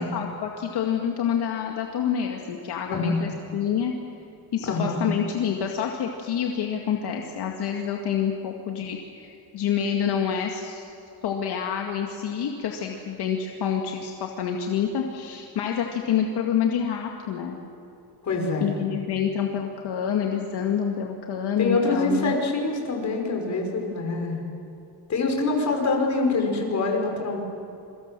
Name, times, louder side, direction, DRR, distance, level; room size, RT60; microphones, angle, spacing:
voice 1, 0.0-3.9 4.5-10.9 11.2-17.6 18.6-22.3, left 8 dB, 65° left, 2 dB, 2.2 m, -27 dB
voice 2, 2.9-3.2 4.6-5.1 18.2-18.8 21.6-24.4 25.1-27.4, left 3 dB, 40° left, 2 dB, 5.4 m, -25 dB
27.0 x 24.0 x 7.6 m, 2.8 s
cardioid pair, 150°, 42 cm